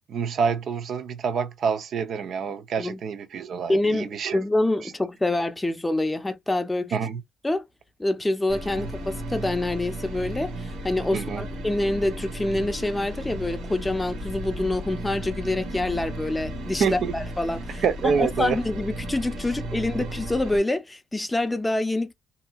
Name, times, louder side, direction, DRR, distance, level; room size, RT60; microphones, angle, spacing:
voice 1, 0.1-4.4 4.8-4.9 6.9-7.2 8.8-8.9 11.1-11.4 16.8-17.1 17.8-18.6, right 6 dB, 65° right, 0.6 m, -27 dB
voice 2, 3.7-6.9 7.4-7.6 8.0-22.1, left 2 dB, 10° left, 0.6 m, -26 dB
sound 1, 8.5-20.6, right 1 dB, 90° right, 1.2 m, -34 dB
2.7 x 2.7 x 2.3 m
cardioid pair, 90°, 0 cm